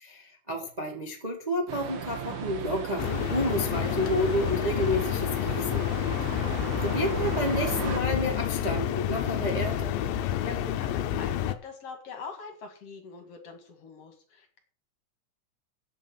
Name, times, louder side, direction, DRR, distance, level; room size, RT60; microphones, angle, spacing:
voice 1, 0.0-5.9 6.3-9.9, equal, 35° right, 1 dB, 0.6 m, -30 dB
sound 1, 1.7-8.0, right 7 dB, 55° right, 1.6 m, -37 dB
sound 2, 3.0-11.5, left 11 dB, 85° left, 2.5 m, -29 dB
voice 2, 10.1-14.6, left 5 dB, 50° left, 4 dB, 2.8 m, -43 dB
8.4 x 7.4 x 8.5 m, 0.43 s
omnidirectional pair, 4.0 m